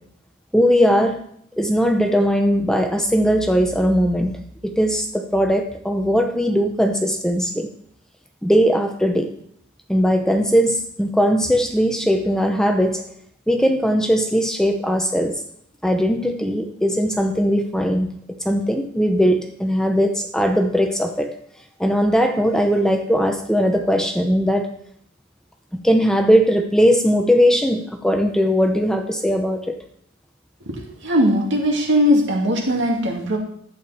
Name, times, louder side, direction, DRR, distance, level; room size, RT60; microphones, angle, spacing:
voice 1, 0.5-1.2 1.6-7.7 8.4-9.3 9.9-13.0 13.5-15.4 15.8-18.1 18.4-21.3 21.8-24.7 25.7-29.7, equal, 5° left, 4 dB, 0.7 m, -19 dB
voice 2, 30.6-33.4, equal, 60° right, 1 dB, 2.4 m, -19 dB
11.5 x 8.6 x 4.2 m, 0.69 s
head